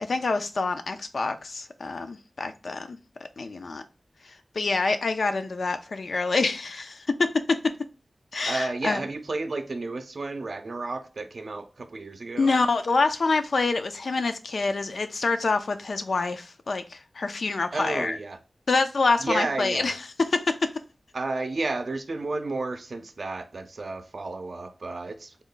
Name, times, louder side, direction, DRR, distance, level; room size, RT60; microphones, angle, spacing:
voice 1, 0.1-3.0 3.4-3.8 4.6-7.7 8.3-9.0 12.4-18.2 18.7-19.9 20.2-20.7, left 3 dB, 80° left, 0.4 m, -26 dB
voice 2, 8.4-12.5 17.7-18.4 19.2-20.0 21.1-25.4, right 3 dB, 65° right, 0.5 m, -32 dB
3.5 x 2.2 x 3.8 m
wide cardioid pair, 80°, 0 cm